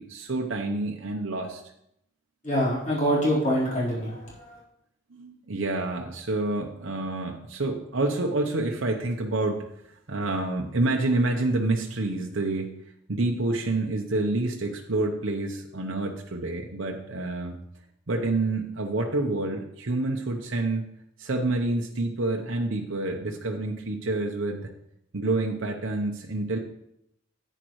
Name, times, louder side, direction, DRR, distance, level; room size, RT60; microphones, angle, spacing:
voice 1, 0.0-1.6 5.1-12.7 13.1-17.6 18.1-20.9 21.2-24.7 25.1-26.6, right 2 dB, 65° right, 1 dB, 0.9 m, -28 dB
voice 2, 2.4-4.6, equal, 35° left, -7 dB, 4.0 m, -25 dB
10.5 x 8.9 x 3.1 m, 0.76 s
head